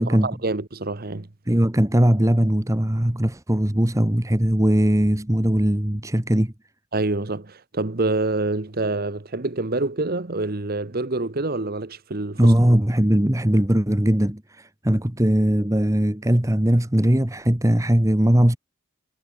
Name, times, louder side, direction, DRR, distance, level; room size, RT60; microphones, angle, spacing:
voice 1, 0.0-1.3 6.9-12.5, right 2 dB, 45° right, 1.1 m, -26 dB
voice 2, 1.5-6.5 12.4-18.6, equal, 15° right, 1.2 m, -20 dB
head